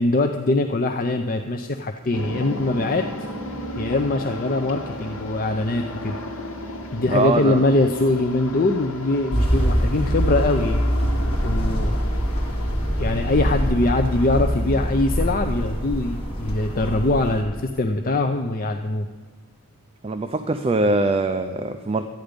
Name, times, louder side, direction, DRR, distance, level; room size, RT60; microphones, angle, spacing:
voice 1, 0.0-3.0 3.8-6.2 6.9-10.8 11.2-12.0 13.0-19.1, left 2 dB, 40° left, 5 dB, 0.5 m, -22 dB
sound 1, 2.1-13.7, left 1 dB, 65° left, 1.4 m, -34 dB
voice 2, 7.1-7.6 20.0-22.0, right 2 dB, 25° right, 8 dB, 0.4 m, -22 dB
sound 2, 9.3-17.4, equal, 25° left, 2.4 m, -23 dB
13.0 x 9.2 x 5.1 m, 1.5 s
head